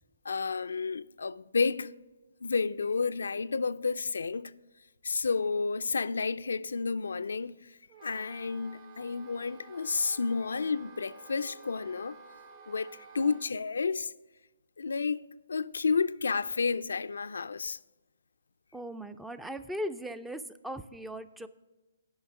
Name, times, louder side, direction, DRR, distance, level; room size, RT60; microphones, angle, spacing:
voice 1, 0.2-1.9 2.4-4.5 5.0-12.2 12.7-14.1 14.8-15.2 15.5-17.8, left 4 dB, 80° left, 0.3 m, -31 dB
Wind instrument woodwind instrument, 7.9-13.5, right 5 dB, 30° right, 0.8 m, -52 dB
voice 2, 18.7-21.5, equal, 5° right, 0.4 m, -38 dB
8.7 x 5.5 x 7.4 m
hypercardioid pair, 150°, 0 cm